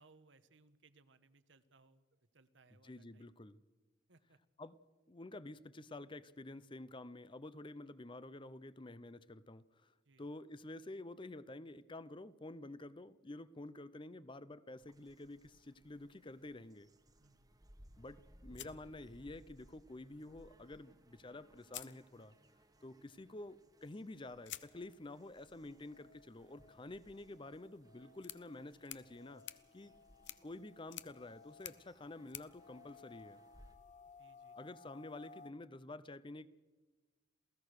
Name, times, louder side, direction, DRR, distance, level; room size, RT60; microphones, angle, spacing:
voice 1, 0.0-3.3 4.1-4.4 10.0-10.3 17.2-17.7 34.2-34.6, right 3 dB, 90° right, 12 dB, 1.3 m, -67 dB
voice 2, 2.8-3.6 4.6-4.7 5.1-9.9 10.2-16.9 18.0-22.4 22.8-29.4 29.7-29.9 30.4-33.4 34.6-36.5, left 2 dB, 25° left, 16 dB, 0.7 m, -50 dB
sound 1, 14.8-33.7, equal, 20° right, 1.2 m, -65 dB
sound 2, 18.5-19.7 21.0-21.1 21.6-22.6 24.4-33.6, left 13 dB, 75° left, 0.9 m, -54 dB
sound 3, 24.7-35.5, left 4 dB, 45° left, 1.3 m, -61 dB
28.0 x 16.5 x 6.6 m, 1.2 s
head